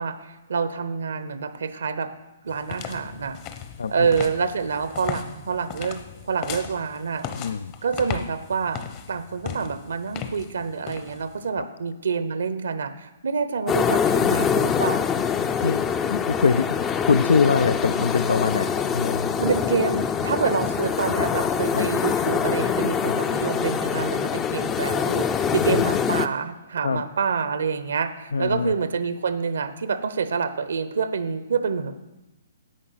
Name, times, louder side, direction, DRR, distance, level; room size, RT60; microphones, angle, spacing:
voice 1, 0.0-2.1 2.4-3.4 3.9-6.0 6.3-7.3 7.8-8.8 9.1-15.1 19.4-32.0, right 5 dB, 75° right, 12 dB, 0.8 m, -27 dB
sound 1, 2.5-11.5, left 8 dB, 35° left, 0.9 m, -37 dB
voice 2, 3.8-4.1 7.3-7.7 11.5-11.6 15.5-15.9 16.1-16.8 17.1-19.4 21.7-21.9 23.0-23.2 25.7-25.8 26.8-27.0 28.3-28.7, left 5 dB, 80° left, 12 dB, 0.4 m, -23 dB
sound 2, 13.7-26.3, left 7 dB, 20° left, 0.5 m, -24 dB
10.5 x 8.3 x 5.7 m, 1.0 s
hypercardioid pair, 140°, 0 cm